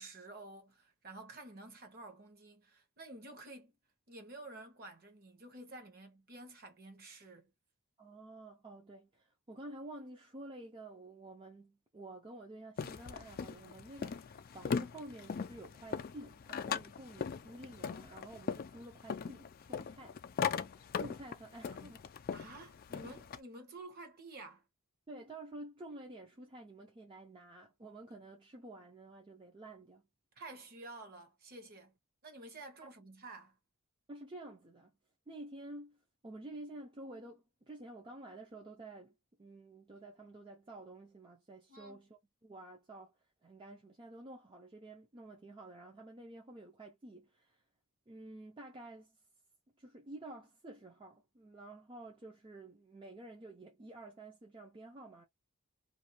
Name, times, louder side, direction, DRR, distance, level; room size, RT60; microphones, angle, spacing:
voice 1, 0.0-3.8 4.1-7.5 22.3-24.6 30.4-31.9 32.2-33.6 41.7-42.0, right 2 dB, 45° right, 1.0 m, -51 dB
voice 2, 8.0-20.2 20.5-22.0 25.1-30.1 34.1-34.9 35.3-36.0 36.2-39.1 39.4-43.1 43.4-47.6 48.1-49.2 49.8-55.3, right 2 dB, 20° right, 0.5 m, -51 dB
sound 1, 12.8-23.4, left 6 dB, 40° left, 0.3 m, -40 dB
2.6 x 2.3 x 2.9 m
head